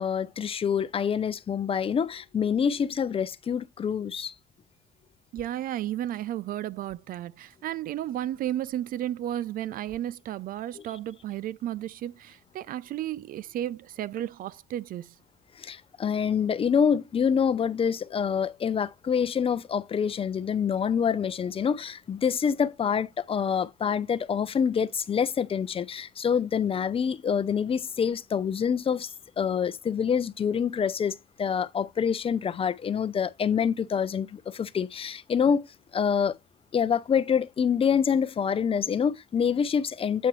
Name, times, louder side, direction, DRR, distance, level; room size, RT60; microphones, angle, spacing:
voice 1, 0.0-4.3 10.8-10.9 15.6-29.1 29.4-35.7 35.9-36.3 36.7-40.3, left 7 dB, 35° left, 0.6 m, -26 dB
voice 2, 5.3-15.1, right 12 dB, 60° right, 0.4 m, -33 dB
8.2 x 5.8 x 3.1 m
cardioid pair, 110°, 17 cm